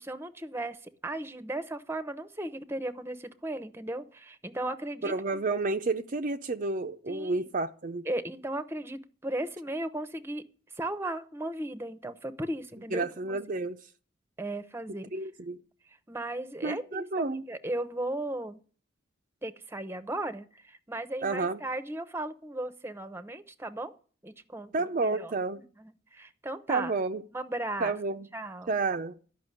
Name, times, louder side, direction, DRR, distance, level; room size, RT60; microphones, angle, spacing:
voice 1, 0.0-5.4 7.1-7.5 8.1-10.4 10.8-13.4 14.4-15.1 16.1-18.6 19.4-23.9 24.2-24.7 25.0-25.3 25.8-26.9 27.3-27.9 28.3-28.7, right 1 dB, 10° right, 11 dB, 0.8 m, -36 dB
voice 2, 5.0-8.0 12.9-13.8 15.1-15.6 16.6-17.4 21.2-21.6 24.7-25.6 26.7-27.2 27.8-28.3 28.7-29.1, right 3 dB, 40° right, 7 dB, 0.5 m, -30 dB
13.0 x 6.0 x 9.7 m, 0.41 s
head